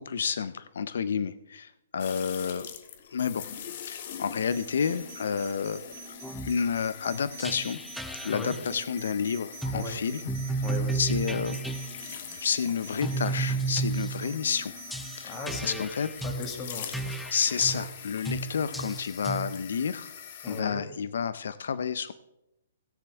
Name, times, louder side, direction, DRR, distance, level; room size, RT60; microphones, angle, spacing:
voice 1, 0.0-2.7 3.1-3.4 3.9-5.8 6.4-7.8 8.2-10.2 10.9-11.6 12.4-14.7 15.2-15.4 15.6-16.1 17.3-20.1 20.4-22.1, left 6 dB, 75° left, 15 dB, 0.5 m, -30 dB
sound 1, 2.0-20.6, left 8 dB, 45° left, 1.3 m, -44 dB
sound 2, 4.5-15.5, right 6 dB, 30° right, 4.0 m, -48 dB
sound 3, 6.2-6.6 7.4-8.6 9.6-9.9 10.3-11.9 13.0-14.3 14.9-16.5 16.9-17.9 18.2-18.5 18.7-19.5, right 3 dB, ahead, 0.5 m, -32 dB
voice 2, 8.2-8.6 9.7-10.0 10.6-11.0 15.2-15.9 16.2-16.9 20.4-20.8, left 3 dB, 20° left, 5 dB, 1.7 m, -37 dB
16.5 x 9.8 x 3.5 m, 0.88 s
hypercardioid pair, 160°, 0 cm